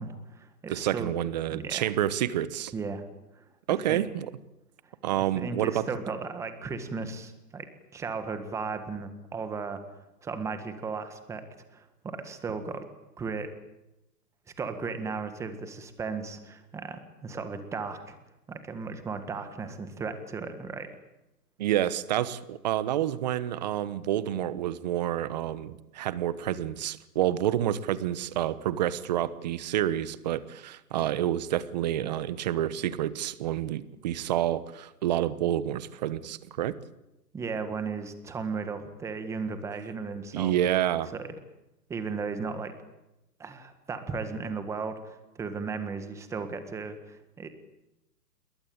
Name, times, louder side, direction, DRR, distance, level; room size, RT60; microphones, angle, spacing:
voice 1, 0.0-1.1 1.5-1.9 2.7-3.0 3.3-3.5 3.9-4.0 4.8-9.8 10.2-11.4 11.7-12.9 13.2-13.5 14.6-18.2 18.5-20.9 37.3-40.5 41.1-41.3 41.9-42.8 43.4-47.5, right 4 dB, 5° right, 9 dB, 1.7 m, -36 dB
voice 2, 0.7-2.7 3.7-4.3 5.0-5.9 21.6-36.7 40.3-41.1, right 12 dB, 25° right, 16 dB, 1.2 m, -28 dB
28.0 x 22.5 x 8.9 m, 0.94 s
hypercardioid pair, 160°, 48 cm